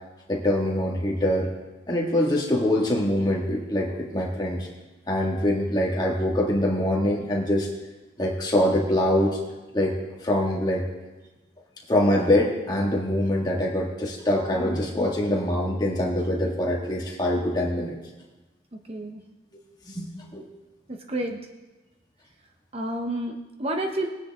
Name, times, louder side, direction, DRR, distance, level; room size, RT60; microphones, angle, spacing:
voice 1, 0.3-1.5 1.9-4.7 5.1-7.7 8.2-9.4 9.7-10.0 10.2-10.9 11.9-18.0 19.9-20.5, left 1 dB, 20° left, -2 dB, 2.0 m, -24 dB
voice 2, 18.9-19.2 20.9-21.4 22.7-24.1, right 1 dB, 30° right, 3 dB, 0.9 m, -30 dB
19.5 x 9.6 x 3.7 m, 1.1 s
head